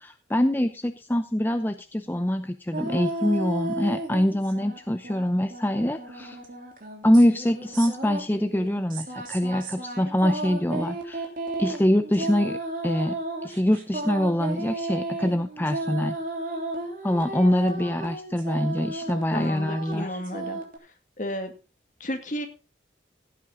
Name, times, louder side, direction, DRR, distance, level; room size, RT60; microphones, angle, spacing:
voice 1, 0.0-6.4 7.0-11.3 11.6-16.2 17.0-20.2, left 1 dB, 10° left, 8 dB, 0.6 m, -24 dB
sound 1, 2.7-4.8 5.0-20.8, right 2 dB, 45° right, 3.3 m, -34 dB
voice 2, 19.3-20.6 21.2-21.5 22.0-22.5, equal, 45° left, 6 dB, 2.1 m, -32 dB
16.0 x 8.5 x 3.8 m, 0.31 s
head